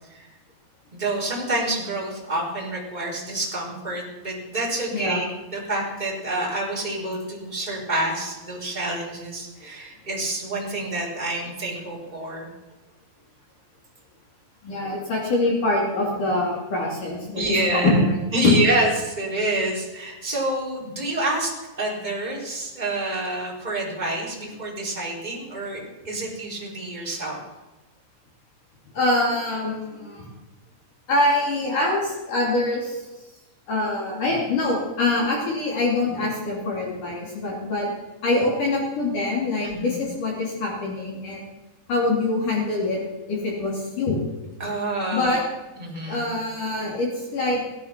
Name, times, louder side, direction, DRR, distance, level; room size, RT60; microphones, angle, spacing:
voice 1, 0.9-5.2 5.5-12.5 17.3-18.0 18.3-27.4 39.6-40.0 44.6-45.4 45.8-46.3, right 1 dB, 10° right, -4 dB, 3.3 m, -27 dB
voice 2, 4.9-5.3 14.6-17.4 17.7-18.2 18.4-18.5 28.9-30.3 31.1-33.1 33.7-37.9 38.2-41.5 41.9-43.0 43.3-44.2 45.1-45.4 46.1-47.6, left 2 dB, 45° left, -2 dB, 3.6 m, -24 dB
16.0 x 12.5 x 5.9 m, 1.1 s
omnidirectional pair, 5.9 m